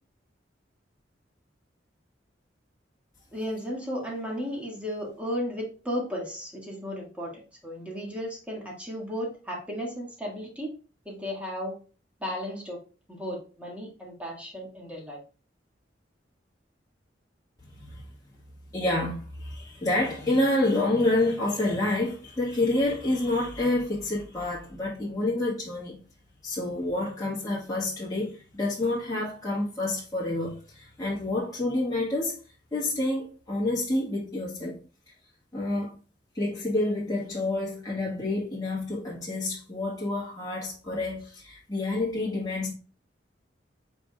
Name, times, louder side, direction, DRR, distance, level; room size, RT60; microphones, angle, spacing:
voice 1, 3.3-10.7 11.0-11.7 12.2-12.8 13.1-15.2, equal, 10° right, 1.7 m, -34 dB
voice 2, 18.7-26.0 26.4-32.4 32.7-34.8 35.5-35.9 36.3-42.7, left 2 dB, 20° left, 1.4 m, -28 dB
5.1 x 4.5 x 2.3 m
head